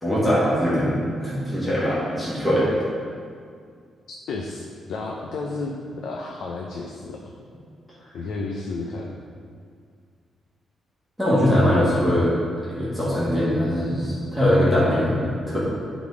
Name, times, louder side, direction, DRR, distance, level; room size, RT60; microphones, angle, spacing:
voice 1, 0.0-2.7 11.2-12.3 12.6-15.6, equal, ahead, -11 dB, 2.0 m, -21 dB
voice 2, 4.1-7.3 8.1-9.3, left 3 dB, 70° left, -1 dB, 0.6 m, -32 dB
9.4 x 4.1 x 5.0 m, 2.2 s
wide cardioid pair, 165°, 0 cm